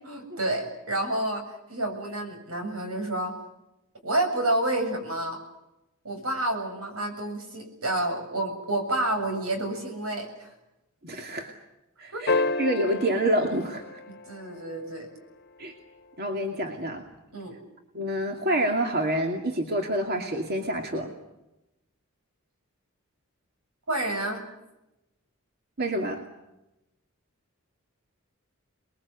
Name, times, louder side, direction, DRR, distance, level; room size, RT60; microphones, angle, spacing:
voice 1, 0.1-3.3 4.0-5.4 6.0-10.5 12.1-12.2 14.1-15.1 17.3-17.5 23.9-24.4, right 1 dB, 85° right, 5 dB, 7.5 m, -29 dB
voice 2, 11.0-11.5 12.0-14.0 15.6-15.7 16.2-17.0 17.9-21.1 25.8-26.2, right 1 dB, 45° right, 3 dB, 2.6 m, -27 dB
sound 1, 12.3-14.8 17.0-17.1, left 3 dB, 50° left, 1.3 m, -30 dB
28.5 x 21.5 x 8.4 m, 0.93 s
head